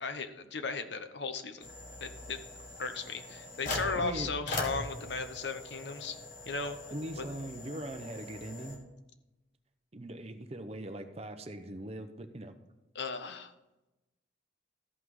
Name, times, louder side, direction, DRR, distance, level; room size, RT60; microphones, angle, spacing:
voice 1, 0.0-1.7 2.0-2.4 2.8-6.2 6.5-6.8 7.2-7.3 12.9-13.5, left 4 dB, 60° left, 9 dB, 0.8 m, -36 dB
sound 1, 1.6-8.8, left 1 dB, 45° left, 1.7 m, -42 dB
voice 2, 3.9-4.3 6.9-8.8 9.9-12.5, right 1 dB, 30° right, 8 dB, 0.7 m, -41 dB
13.5 x 5.8 x 4.8 m, 1.0 s
head